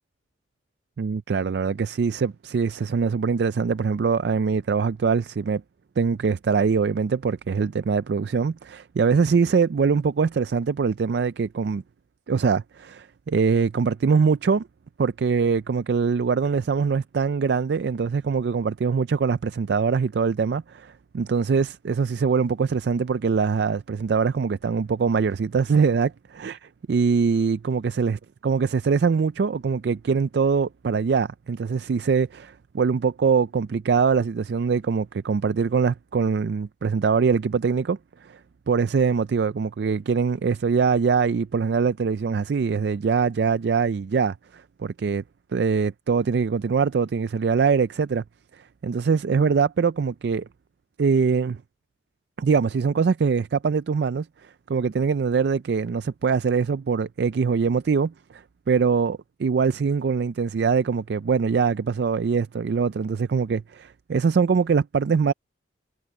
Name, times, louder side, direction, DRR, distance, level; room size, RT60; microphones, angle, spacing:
voice 1, 1.0-5.6 6.0-11.8 12.3-14.6 15.0-26.6 26.9-28.2 28.4-38.0 38.3-38.4 38.7-44.3 44.8-45.2 45.5-48.2 48.8-50.5 51.0-51.6 52.4-54.3 54.7-58.4 58.7-65.3, right 5 dB, 60° right, 0.4 m, -23 dB
head